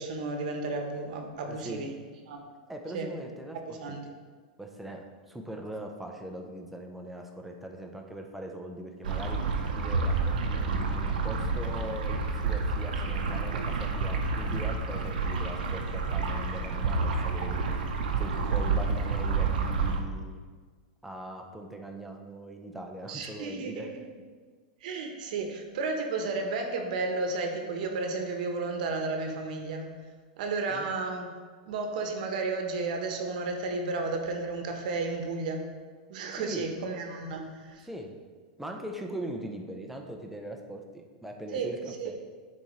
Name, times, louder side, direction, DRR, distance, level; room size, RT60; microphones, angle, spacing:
voice 1, 0.0-1.9 2.3-2.5 2.9-3.1 3.5-4.1 23.1-23.9 24.8-29.9 30.4-31.3 31.7-35.6 36.1-37.8 41.5-42.2, right 3 dB, 65° right, 4 dB, 1.0 m, -33 dB
voice 2, 1.5-1.9 2.7-4.0 4.6-9.4 9.8-17.6 18.2-20.4 21.0-23.9 30.7-30.9 36.4-36.7 37.8-38.1 38.6-42.2, right 1 dB, 5° right, 2 dB, 0.6 m, -41 dB
sound 1, 9.0-20.0, right 4 dB, 90° right, 0.8 m, -29 dB
10.0 x 4.1 x 3.2 m, 1.5 s
supercardioid pair, 140°, 5 cm